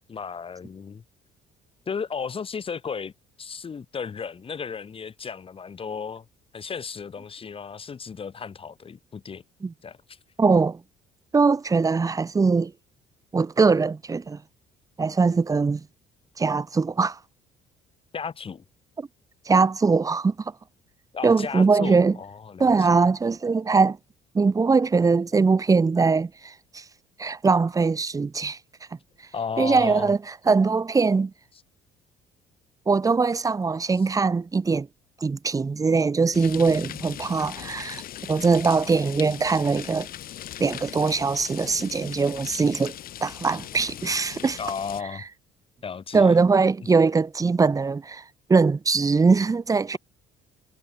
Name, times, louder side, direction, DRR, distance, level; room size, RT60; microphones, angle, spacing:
voice 1, 0.1-1.0 1.9-3.1 3.4-6.2 6.5-9.4 9.8-10.2 18.1-18.6 21.1-22.9 29.3-30.1 44.6-45.2 45.8-46.4, left 6 dB, 35° left, 2.8 m, -34 dB
voice 2, 10.4-10.8 11.3-12.7 13.3-14.4 15.0-15.8 16.4-17.2 19.0-19.1 19.5-20.5 21.2-22.2 22.6-24.0 24.3-26.8 27.2-28.6 29.6-31.3 32.9-34.9 35.2-38.0 38.3-40.1 40.6-43.0 43.2-44.6 46.1-48.2 48.5-50.0, right 4 dB, 20° right, 0.9 m, -21 dB
sound 1, 36.3-45.0, left 12 dB, 60° left, 1.6 m, -39 dB
cardioid pair, 110°, 17 cm